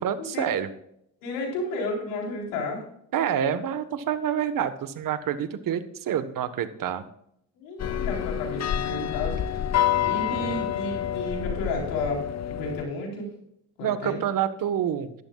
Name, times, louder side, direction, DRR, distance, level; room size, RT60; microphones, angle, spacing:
voice 1, 0.0-0.7 3.1-7.0 10.3-10.6 13.8-15.1, right 9 dB, 60° right, 12 dB, 1.4 m, -27 dB
voice 2, 1.2-2.8 7.6-9.4 10.0-13.3 13.8-14.2, left 2 dB, 90° left, 0 dB, 4.1 m, -32 dB
sound 1, 7.8-12.8, left 10 dB, 45° left, 0.8 m, -28 dB
14.0 x 11.5 x 2.4 m, 0.73 s
supercardioid pair, 65°, 37 cm